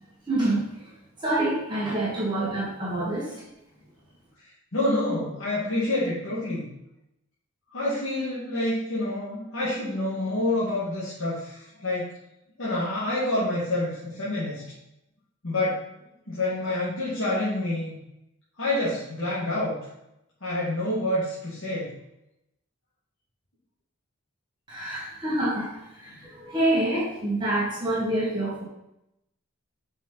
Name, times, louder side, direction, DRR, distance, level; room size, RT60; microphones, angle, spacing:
voice 1, 0.3-0.9 1.2-3.4 24.7-28.6, right 1 dB, 20° right, -6 dB, 1.8 m, -27 dB
voice 2, 4.7-6.7 7.7-12.1 12.6-14.6 15.4-15.8 16.3-17.9 18.6-19.8 20.4-21.9, left 1 dB, 60° left, -9 dB, 2.1 m, -27 dB
8.4 x 5.5 x 4.1 m, 0.85 s
head